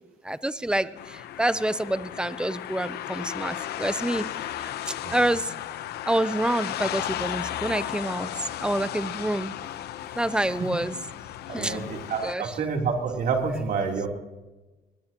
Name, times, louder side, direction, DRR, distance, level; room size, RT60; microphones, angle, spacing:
voice 1, 0.3-0.9 1.4-4.2 5.1-5.5 6.1-8.3 8.6-9.5 10.2-10.9 11.5-11.9 12.2-12.6, right 1 dB, 5° right, 15 dB, 0.6 m, -27 dB
sound 1, 1.0-12.4, left 12 dB, 70° left, 0.9 m, -35 dB
voice 2, 11.5-14.1, right 5 dB, 60° right, 1 dB, 3.4 m, -28 dB
21.5 x 20.5 x 3.0 m, 1.1 s
cardioid pair, 110°, 17 cm